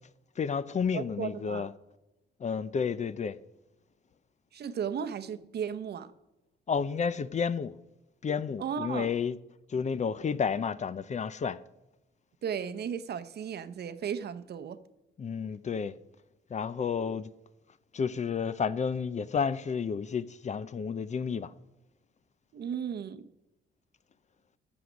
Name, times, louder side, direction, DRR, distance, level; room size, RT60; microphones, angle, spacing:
voice 1, 0.4-1.7 2.4-3.4 6.7-7.7 8.2-9.4 9.7-11.6 15.2-16.0 16.5-17.3 17.9-21.5, left 6 dB, 35° left, 0.6 m, -31 dB
voice 2, 0.9-1.7 4.5-6.1 8.6-9.1 12.4-14.8 22.5-23.3, right 7 dB, 55° right, 0.8 m, -35 dB
14.0 x 8.0 x 5.1 m
cardioid pair, 90°, 20 cm